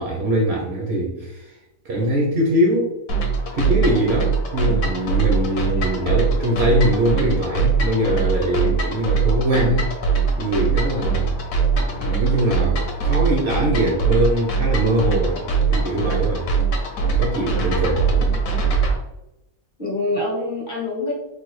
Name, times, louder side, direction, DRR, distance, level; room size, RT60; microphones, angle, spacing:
voice 1, 0.0-1.6 1.8-3.0 3.5-9.9 10.3-11.4 11.8-16.5 17.2-18.4, right 1 dB, 60° right, -2 dB, 0.7 m, -22 dB
sound 1, 3.1-19.0, right 5 dB, 70° left, 1.0 m, -22 dB
voice 2, 17.4-17.9 19.8-21.1, left 2 dB, 40° left, -2 dB, 0.9 m, -27 dB
3.3 x 2.2 x 3.0 m, 0.91 s
omnidirectional pair, 1.5 m